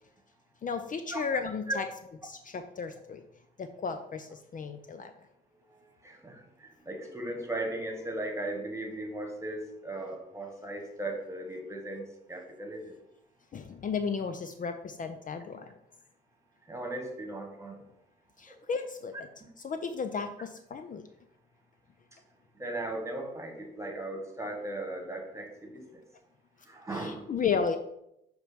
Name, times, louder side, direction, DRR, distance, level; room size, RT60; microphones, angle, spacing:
voice 1, 0.6-1.8 2.2-3.2 3.6-5.1 13.5-15.7 18.4-19.2 19.6-21.1 26.9-27.8, left 5 dB, 40° left, 8 dB, 0.5 m, -34 dB
voice 2, 5.5-13.0 16.6-17.8 18.5-18.6 22.1-22.2 22.5-26.0 26.6-27.3, right 1 dB, 15° right, 2 dB, 1.6 m, -37 dB
6.5 x 3.2 x 5.0 m, 0.81 s
cardioid pair, 75°, 20 cm